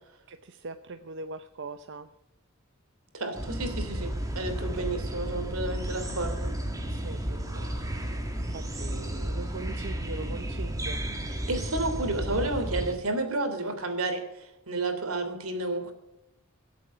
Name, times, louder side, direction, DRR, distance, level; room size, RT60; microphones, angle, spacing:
voice 1, 0.3-2.1 4.7-4.8 6.9-8.2 8.5-11.0, right 3 dB, 60° right, 9 dB, 0.7 m, -42 dB
voice 2, 3.1-6.5 11.5-15.9, right 2 dB, 85° right, 6 dB, 3.2 m, -31 dB
sound 1, 3.3-12.9, right 1 dB, 15° right, 2.2 m, -33 dB
22.5 x 8.3 x 5.7 m, 0.93 s
head